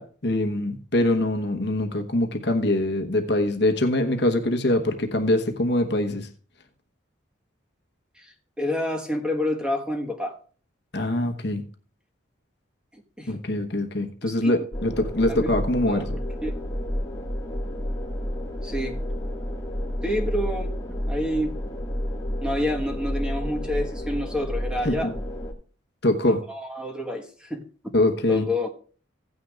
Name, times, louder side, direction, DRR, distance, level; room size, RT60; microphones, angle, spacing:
voice 1, 0.0-6.3 10.9-11.6 13.3-16.2 24.8-25.1 26.0-26.4 27.9-28.5, left 1 dB, 55° left, 1.1 m, -23 dB
voice 2, 8.2-10.3 12.9-13.3 14.4-14.5 15.3-15.5 15.9-16.0 16.4-16.5 18.6-19.0 20.0-20.7 21.1-21.5 22.4-25.1 26.3-27.6 28.3-28.7, left 1 dB, 5° right, 1.3 m, -28 dB
sound 1, 14.7-25.5, equal, 15° left, 1.9 m, -30 dB
16.0 x 9.4 x 2.4 m
head